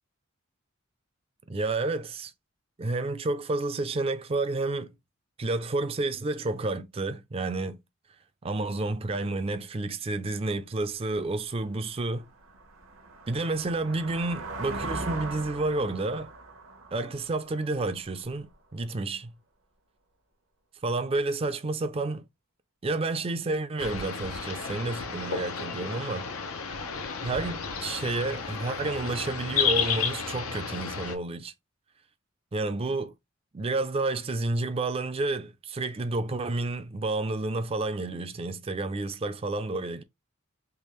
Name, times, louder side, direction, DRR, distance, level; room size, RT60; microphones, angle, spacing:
voice 1, 1.5-2.3 2.8-4.9 5.4-7.8 8.4-12.3 13.3-16.3 16.9-19.4 20.8-22.3 22.8-26.3 27.2-31.5 32.5-33.1 33.5-40.0, right 2 dB, 25° right, 0.4 m, -30 dB
sound 1, 11.1-11.2 11.7-18.3, right 2 dB, 80° right, 0.9 m, -40 dB
sound 2, 23.8-31.1, left 6 dB, 90° left, 0.7 m, -32 dB
3.5 x 2.4 x 3.1 m
head